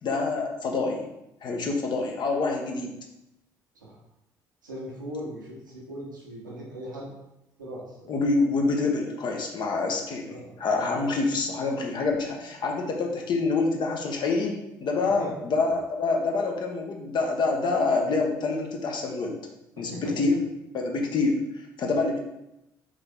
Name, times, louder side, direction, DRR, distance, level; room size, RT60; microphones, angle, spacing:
voice 1, 0.0-1.1 1.4-2.9 8.1-19.4 19.8-20.4 20.7-21.4 21.8-22.2, left 3 dB, 50° left, 1 dB, 0.8 m, -26 dB
voice 2, 4.6-7.1 7.6-8.1 10.3-10.5 15.0-15.3 19.9-20.3, equal, 90° right, -4 dB, 0.9 m, -38 dB
3.8 x 3.3 x 3.5 m, 0.89 s
hypercardioid pair, 50°, 10 cm